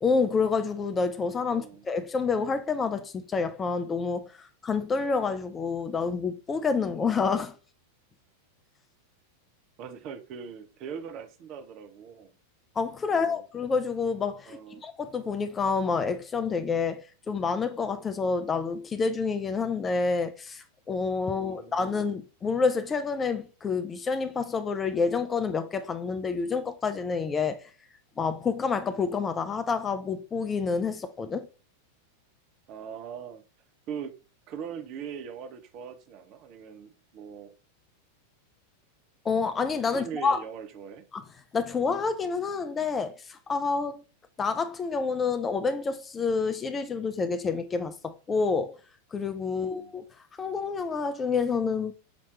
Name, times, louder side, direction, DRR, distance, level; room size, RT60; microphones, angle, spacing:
voice 1, 0.0-7.5 12.8-27.7 28.2-31.5 39.2-40.4 41.1-41.2 41.5-44.0 44.4-48.8 49.1-50.1 50.4-51.9, left 5 dB, 20° left, 0.4 m, -28 dB
voice 2, 1.5-1.8 9.8-12.3 13.1-13.4 14.5-14.8 21.2-22.0 32.7-33.4 33.9-34.1 34.5-37.5 39.9-41.0 49.5-49.9, right 7 dB, 40° right, 0.8 m, -41 dB
6.0 x 2.9 x 3.1 m
figure-of-eight pair, 90°, 0 cm